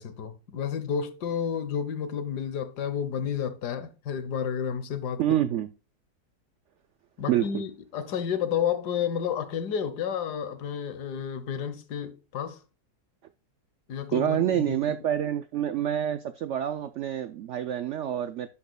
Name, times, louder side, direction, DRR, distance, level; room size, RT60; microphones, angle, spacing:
voice 1, 0.0-5.2 7.2-12.6 13.9-14.8, left 8 dB, 90° left, 1.5 m, -31 dB
voice 2, 5.2-5.7 7.3-7.6 14.1-18.5, right 11 dB, 75° right, 0.6 m, -27 dB
10.5 x 7.1 x 2.2 m
omnidirectional pair, 1.7 m